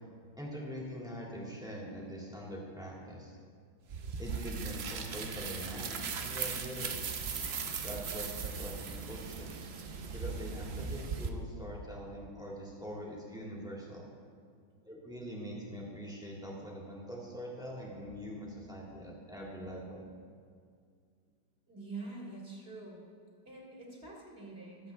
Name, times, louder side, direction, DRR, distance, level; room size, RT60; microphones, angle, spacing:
voice 1, 0.4-3.4 4.2-7.4 7.8-9.6 10.1-14.1 14.8-20.0, equal, ahead, -4 dB, 2.2 m, -43 dB
sound 1, 3.9-11.3, right 5 dB, 65° right, 0.6 m, -39 dB
sound 2, 5.0-10.9, right 4 dB, 85° right, 1.9 m, -48 dB
voice 2, 21.7-23.0 23.4-24.9, right 3 dB, 30° right, -3 dB, 2.5 m, -45 dB
22.5 x 7.9 x 3.5 m, 2.2 s
omnidirectional pair, 2.1 m